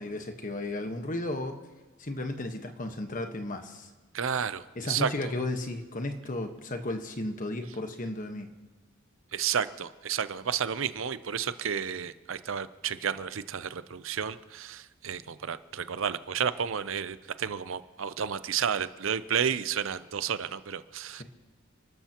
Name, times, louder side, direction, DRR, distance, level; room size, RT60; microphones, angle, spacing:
voice 1, 0.0-1.6 2.0-3.9 4.7-8.5, left 2 dB, 40° left, 5 dB, 1.3 m, -34 dB
voice 2, 4.1-5.1 9.3-21.2, right 7 dB, 65° right, 14 dB, 0.6 m, -31 dB
30.0 x 13.0 x 3.0 m, 1.2 s
head